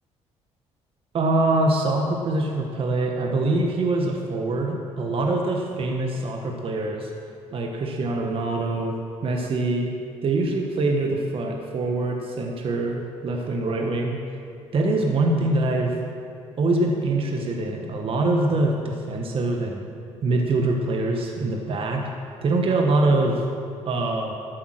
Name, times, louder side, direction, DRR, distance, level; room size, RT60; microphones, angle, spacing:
voice 1, 1.1-7.1 7.5-9.9 10.2-14.2 14.7-16.0 16.6-19.9 20.2-22.1 22.4-23.4 23.9-24.3, right 2 dB, 50° right, 2 dB, 1.3 m, -24 dB
12.5 x 8.1 x 6.5 m, 2.5 s
cardioid pair, 90°, 12 cm